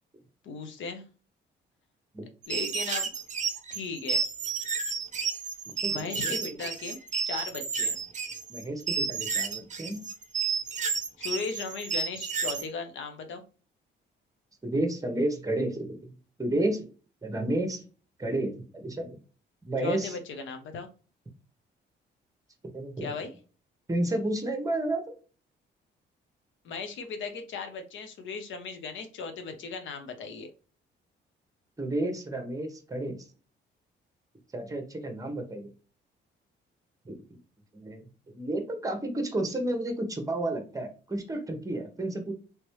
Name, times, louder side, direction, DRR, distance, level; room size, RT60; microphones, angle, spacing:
voice 1, 0.4-1.0 2.5-3.1 3.7-4.2 5.9-7.0 7.2-8.0 11.2-13.4 19.8-20.9 23.0-23.3 26.6-30.5, left 4 dB, 75° left, 7 dB, 0.8 m, -37 dB
sound 1, 2.4-12.7, right 5 dB, 35° right, 0.7 m, -31 dB
voice 2, 5.8-6.5 8.5-10.0 14.6-16.1 16.4-16.8 17.2-17.8 18.2-19.2 19.7-20.2 22.7-23.1 23.9-25.0 31.8-33.2 34.5-35.7 37.0-37.2 37.7-38.1 38.3-42.3, right 1 dB, 15° right, 5 dB, 1.0 m, -31 dB
3.3 x 3.0 x 3.1 m, 0.36 s
cardioid pair, 90°, 20 cm